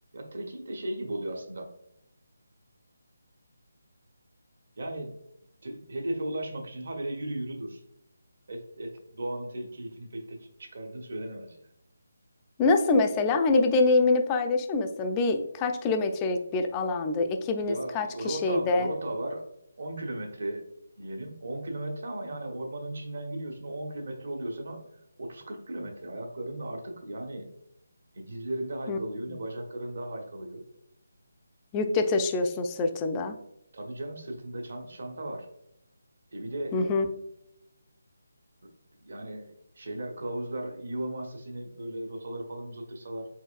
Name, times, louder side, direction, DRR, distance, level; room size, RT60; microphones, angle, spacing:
voice 1, 0.1-1.7 4.8-5.1 5.6-7.8 8.5-11.6 17.6-19.5 19.8-20.7 21.0-24.8 25.2-27.6 28.1-30.6 33.7-35.5 36.3-36.8 38.6-38.7 39.0-43.3, right 1 dB, 60° right, 3 dB, 1.0 m, -36 dB
voice 2, 12.6-18.9 28.9-29.0 31.7-33.4 36.7-37.1, left 3 dB, 20° left, 6 dB, 0.4 m, -25 dB
4.6 x 4.0 x 2.5 m, 0.80 s
figure-of-eight pair, 155°, 0 cm